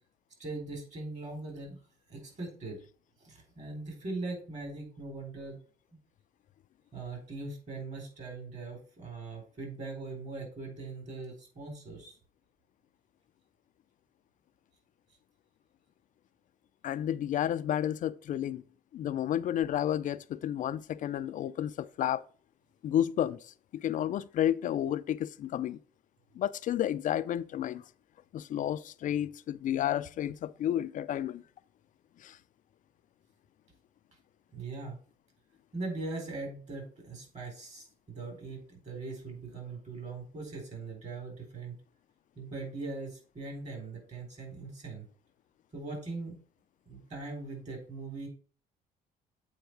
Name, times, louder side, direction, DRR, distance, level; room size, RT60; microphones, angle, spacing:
voice 1, 0.4-1.8 2.1-2.8 3.2-5.6 6.9-12.2 34.5-35.0 35.7-41.7 42.4-45.1 45.7-46.4 46.9-48.3, right 3 dB, 45° right, 4.0 m, -40 dB
voice 2, 16.8-18.6 18.9-21.7 22.0-22.2 22.8-23.4 23.8-25.8 26.4-27.8 28.3-31.4, left 11 dB, 50° left, 0.4 m, -31 dB
7.9 x 4.6 x 4.6 m
cardioid pair, 110°, 17 cm